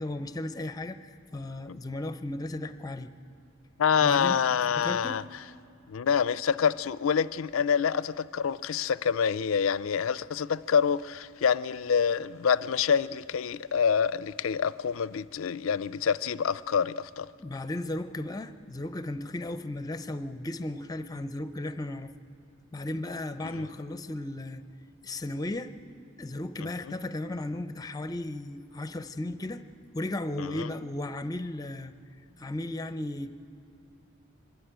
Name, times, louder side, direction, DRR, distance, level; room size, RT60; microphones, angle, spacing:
voice 1, 0.0-3.1 4.0-4.4 4.8-5.3 17.4-22.1 22.7-24.6 25.0-25.7 26.2-29.6 29.9-31.9 32.4-33.3, left 1 dB, 20° left, 11 dB, 0.6 m, -35 dB
voice 2, 3.8-5.2 5.9-17.3 23.4-23.6 26.6-26.9 30.4-30.7, left 7 dB, 80° left, 17 dB, 0.4 m, -27 dB
24.0 x 13.0 x 9.0 m, 2.8 s
head